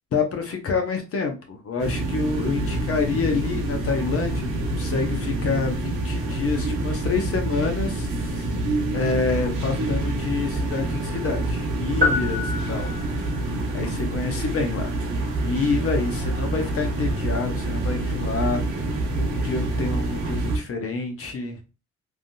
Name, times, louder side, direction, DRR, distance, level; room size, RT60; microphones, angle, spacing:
voice 1, 0.1-8.6 8.9-12.9 13.7-14.9 15.4-18.8 19.1-21.6, left 4 dB, 50° left, 4 dB, 0.9 m, -27 dB
sound 1, 1.8-20.6, right 2 dB, 85° right, 1.0 m, -27 dB
sound 2, 12.0-13.5, left 3 dB, 30° right, 1.1 m, -26 dB
3.4 x 2.6 x 2.2 m, 0.30 s
cardioid pair, 90°, 30 cm